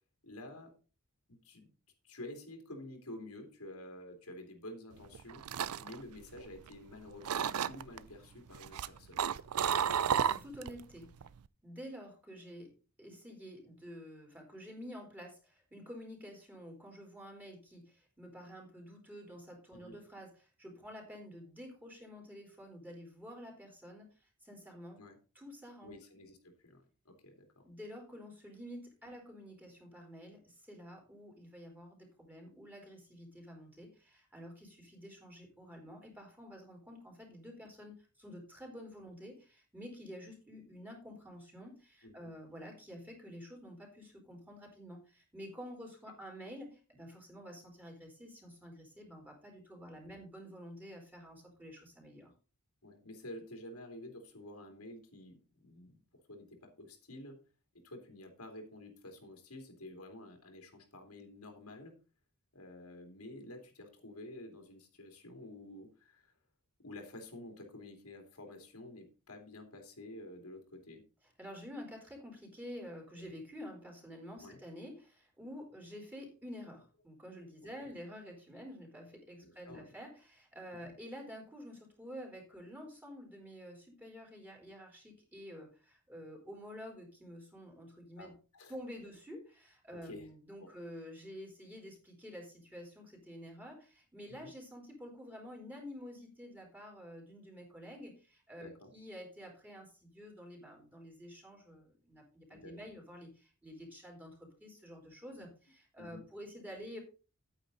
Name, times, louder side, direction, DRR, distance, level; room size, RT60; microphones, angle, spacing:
voice 1, 0.2-0.7 1.4-1.7 2.0-9.2 19.7-20.0 25.0-25.2 25.8-27.7 29.0-29.1 42.0-42.3 49.9-50.0 52.8-56.0 56.3-57.4 57.8-61.9 62.5-66.3 66.8-71.0 73.1-73.2 74.4-74.6 79.4-79.9 88.2-88.7 89.9-90.3 90.6-90.7 94.4-94.5 98.6-98.9 102.5-102.7 106.0-106.2, left 1 dB, 90° left, 4 dB, 3.0 m, -50 dB
sound 1, 5.0-6.9 7.2-8.0 8.5-10.8 11.1-11.5, right 8 dB, 90° right, 0.5 m, -33 dB
voice 2, 10.2-11.1 11.6-12.7 13.0-25.0 25.3-26.0 27.6-52.3 71.4-88.3 88.7-107.0, equal, 10° right, 1 dB, 3.8 m, -49 dB
9.7 x 9.1 x 4.0 m, 0.33 s
head